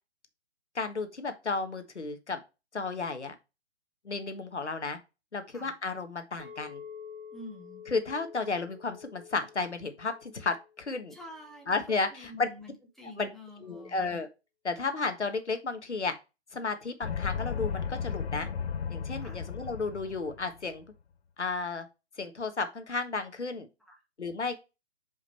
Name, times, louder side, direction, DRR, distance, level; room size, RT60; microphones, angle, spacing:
voice 1, 0.7-2.4 2.7-3.4 4.0-5.0 5.3-6.8 7.9-11.1 11.7-12.5 13.2-13.3 13.6-14.3 14.6-16.1 16.5-18.5 18.9-20.8 21.4-21.9 22.2-23.7 24.2-24.6, left 3 dB, 85° left, 8 dB, 1.4 m, -33 dB
Chink clink, 6.4-11.6, left 7 dB, 40° left, 3.1 m, -49 dB
voice 2, 7.3-7.8 11.1-11.8 12.1-14.2 19.2-19.4 23.9-24.0, left 1 dB, ahead, 1 dB, 0.6 m, -48 dB
sound 1, 17.0-20.6, left 6 dB, 65° left, 0.6 m, -34 dB
5.2 x 4.9 x 4.2 m, 0.27 s
figure-of-eight pair, 135°, 33 cm